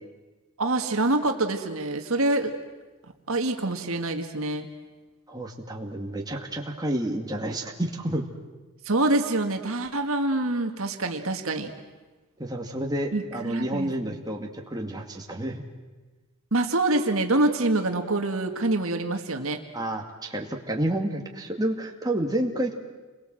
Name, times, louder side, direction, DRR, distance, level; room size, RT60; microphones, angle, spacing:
voice 1, 0.6-2.6 3.3-4.7 8.9-11.7 13.1-14.1 16.5-19.6, right 2 dB, 70° right, 5 dB, 1.9 m, -26 dB
voice 2, 5.3-8.3 12.4-15.6 19.7-22.7, right 1 dB, 20° right, 1 dB, 2.2 m, -30 dB
29.5 x 22.0 x 7.7 m, 1.2 s
head